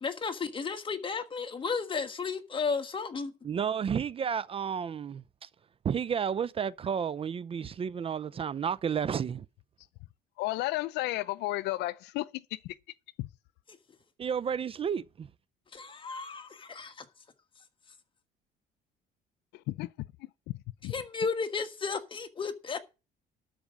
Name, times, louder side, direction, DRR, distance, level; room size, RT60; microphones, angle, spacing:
voice 1, 0.0-3.3 15.8-17.0 20.9-22.8, left 5 dB, 30° left, 1.6 m, -33 dB
voice 2, 3.4-5.5 5.8-9.4 14.2-15.3, right 7 dB, 35° right, 0.5 m, -31 dB
voice 3, 10.4-12.8 13.2-13.3 19.5-19.9 20.8-20.9, left 18 dB, 85° left, 0.5 m, -33 dB
12.5 x 4.9 x 7.5 m
cardioid pair, 110°, 17 cm